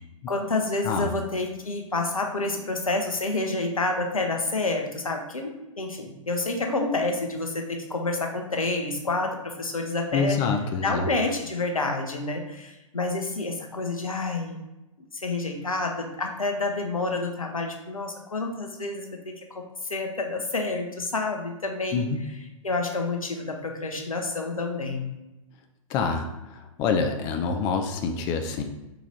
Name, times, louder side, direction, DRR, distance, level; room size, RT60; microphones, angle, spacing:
voice 1, 0.3-10.4 10.8-14.6 15.1-19.6 19.9-22.1 22.6-25.1, left 2 dB, 85° left, 3 dB, 0.8 m, -28 dB
voice 2, 10.1-11.1 21.9-22.2 25.9-28.6, left 5 dB, 20° left, 5 dB, 0.3 m, -26 dB
4.2 x 3.0 x 3.9 m, 0.99 s
figure-of-eight pair, 110°, 17 cm